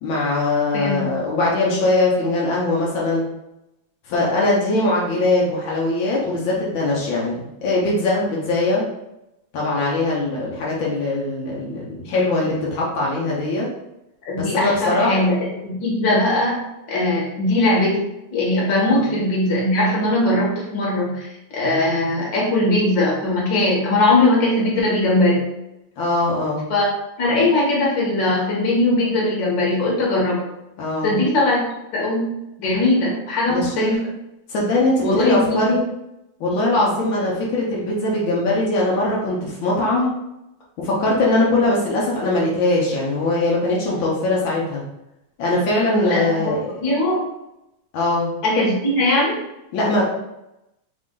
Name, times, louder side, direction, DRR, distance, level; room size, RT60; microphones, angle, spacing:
voice 1, 0.0-3.2 4.1-8.8 9.5-13.7 14.4-15.2 18.9-19.1 26.0-26.6 30.8-31.1 33.5-33.9 34.5-35.8 36.4-40.1 40.8-44.8 45.4-46.8 47.9-48.3 49.7-50.1, left 2 dB, 80° left, -5 dB, 1.1 m, -21 dB
voice 2, 0.7-1.1 14.2-15.4 15.6-16.6 16.9-25.5 26.7-26.9 27.2-30.4 31.0-31.6 31.9-34.1 35.0-35.7 46.0-47.2 48.4-49.4, left 2 dB, 50° left, -4 dB, 1.6 m, -20 dB
4.4 x 2.5 x 3.7 m, 0.88 s
omnidirectional pair, 3.4 m